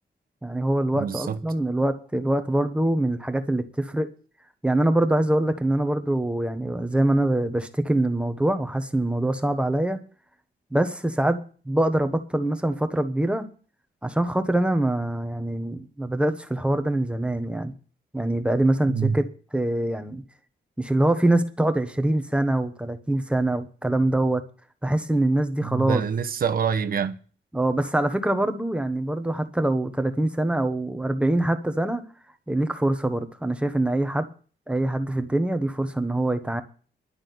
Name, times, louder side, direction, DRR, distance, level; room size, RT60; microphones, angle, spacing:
voice 1, 0.4-4.1 4.6-10.0 10.7-11.4 11.6-13.5 14.0-17.7 18.1-19.3 19.5-20.2 20.8-24.4 24.8-26.0 27.5-32.0 32.5-34.3 34.7-36.6, right 1 dB, 5° right, 1.3 m, -24 dB
voice 2, 0.9-1.4 18.9-19.2 25.6-27.2, right 6 dB, 55° right, 1.1 m, -26 dB
11.5 x 6.3 x 9.3 m
wide cardioid pair, 145°, 18 cm